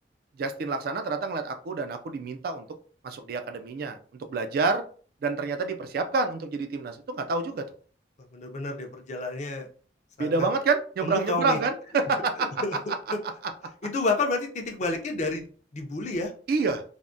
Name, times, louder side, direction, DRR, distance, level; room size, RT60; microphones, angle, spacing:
voice 1, 0.4-2.7 3.0-4.0 4.3-4.8 5.2-7.7 10.2-12.5 16.5-16.8, right 4 dB, 55° right, 8 dB, 0.3 m, -28 dB
voice 2, 8.3-9.7 10.2-10.5 11.0-11.6 12.6-12.8 13.8-15.4 15.7-16.3, left 3 dB, 40° left, 3 dB, 0.5 m, -29 dB
3.4 x 2.1 x 2.5 m, 0.42 s
head